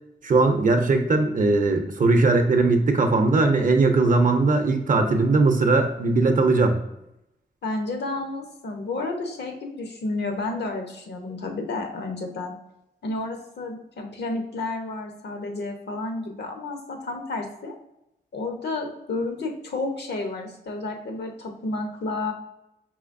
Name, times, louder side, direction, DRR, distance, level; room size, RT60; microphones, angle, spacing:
voice 1, 0.2-6.8, right 3 dB, 50° right, 5 dB, 0.6 m, -19 dB
voice 2, 7.6-12.5 13.0-17.7 18.3-22.3, left 2 dB, 70° left, 3 dB, 0.8 m, -31 dB
4.9 x 3.2 x 2.5 m, 0.85 s
wide cardioid pair, 100°, 18 cm